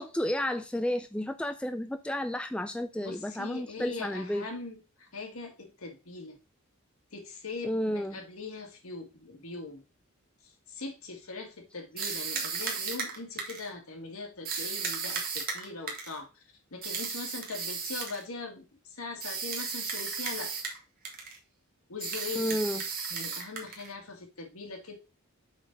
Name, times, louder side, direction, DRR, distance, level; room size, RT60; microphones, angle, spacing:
voice 1, 0.0-4.5 7.6-8.2 22.4-22.8, left 1 dB, 5° left, 0.3 m, -31 dB
voice 2, 3.0-6.4 7.1-9.8 10.4-16.4 16.7-20.5 21.9-22.6 23.1-25.0, left 3 dB, 80° left, 1.9 m, -41 dB
sound 1, 12.0-13.7 14.4-16.2 16.8-18.2 19.2-20.8 21.0-21.4 22.0-23.9, right 5 dB, 40° right, 1.7 m, -35 dB
6.4 x 4.0 x 5.3 m
head